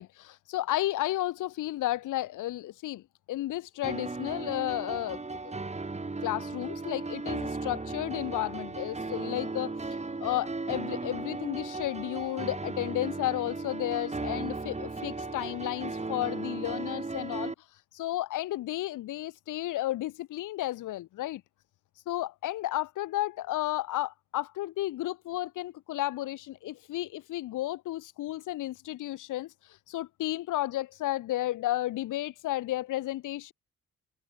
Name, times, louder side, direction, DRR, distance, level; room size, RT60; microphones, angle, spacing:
voice 1, 0.0-3.0 3.3-5.2 5.4-5.5 6.2-9.8 10.2-17.5 17.9-21.4 22.1-33.5, left 15 dB, 85° left, 5.8 m, -33 dB
sound 1, 3.8-17.5, right 3 dB, 20° right, 6.1 m, -36 dB
cardioid pair, 90°, 30 cm